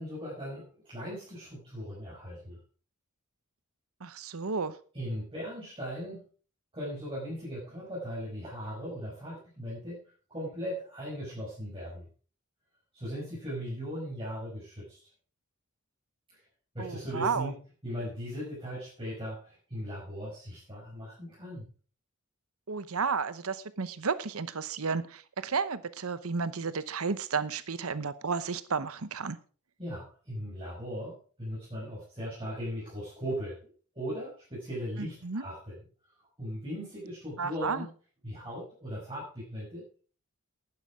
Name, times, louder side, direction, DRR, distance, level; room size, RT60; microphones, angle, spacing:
voice 1, 0.0-2.6 4.9-6.2 6.7-10.0 10.3-12.1 12.9-15.0 16.3-16.4 16.7-21.7 29.8-35.7 36.4-37.9 38.2-40.0, equal, 25° right, -8 dB, 5.8 m, -38 dB
voice 2, 4.0-4.8 16.8-17.5 22.7-29.4 35.0-35.4 37.4-37.9, right 5 dB, 75° right, 15 dB, 0.9 m, -32 dB
11.5 x 9.9 x 4.8 m, 0.39 s
head